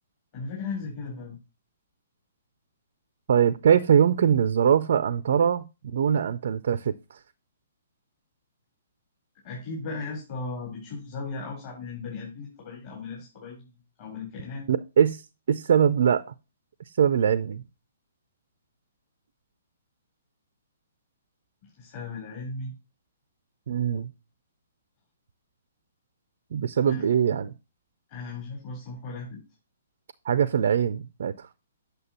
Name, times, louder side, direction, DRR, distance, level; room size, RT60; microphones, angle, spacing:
voice 1, 0.3-1.4 9.4-14.7 21.8-22.7 26.8-27.1 28.1-29.4, left 4 dB, 40° left, 4.1 m, -37 dB
voice 2, 3.3-5.7 5.9-7.2 14.7-15.2 15.5-16.2 17.0-17.6 23.7-24.1 26.5-27.5 30.3-31.5, right 8 dB, 55° right, 0.5 m, -22 dB
8.5 x 6.6 x 3.0 m
figure-of-eight pair, 120°, 0 cm